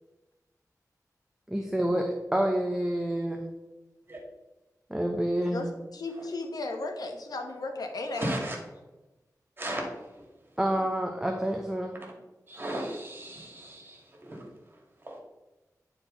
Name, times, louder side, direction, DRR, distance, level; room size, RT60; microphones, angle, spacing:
voice 1, 1.5-3.5 4.9-5.8 10.6-12.0, right 1 dB, 10° right, 2 dB, 0.7 m, -28 dB
voice 2, 5.9-8.3, left 2 dB, 80° left, 4 dB, 1.1 m, -35 dB
voice 3, 8.1-8.6 9.6-9.8 12.5-14.4 15.1-15.2, right 1 dB, 35° right, -1 dB, 2.2 m, -35 dB
9.8 x 4.5 x 3.9 m, 1.1 s
wide cardioid pair, 95°, 6 cm